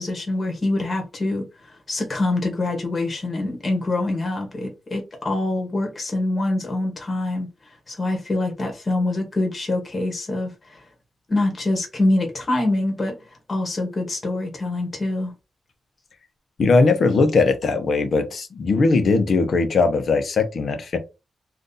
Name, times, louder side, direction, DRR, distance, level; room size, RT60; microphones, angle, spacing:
voice 1, 0.0-10.9 11.3-15.3, left 2 dB, 30° left, 1.0 m, -25 dB
voice 2, 16.6-21.0, left 3 dB, 55° left, 0.7 m, -19 dB
2.7 x 2.5 x 3.7 m
wide cardioid pair, 135°, 0 cm